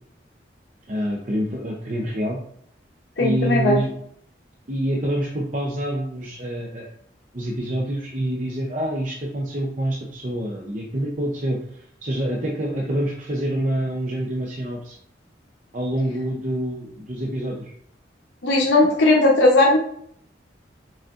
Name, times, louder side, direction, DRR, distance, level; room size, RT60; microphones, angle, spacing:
voice 1, 0.9-2.4 3.2-3.9 4.7-6.9 7.3-15.0 15.7-17.7, right 1 dB, 45° right, -2 dB, 0.6 m, -26 dB
voice 2, 3.2-3.8 18.4-19.8, left 2 dB, 80° left, -2 dB, 0.9 m, -17 dB
5.0 x 3.7 x 2.5 m, 0.66 s
head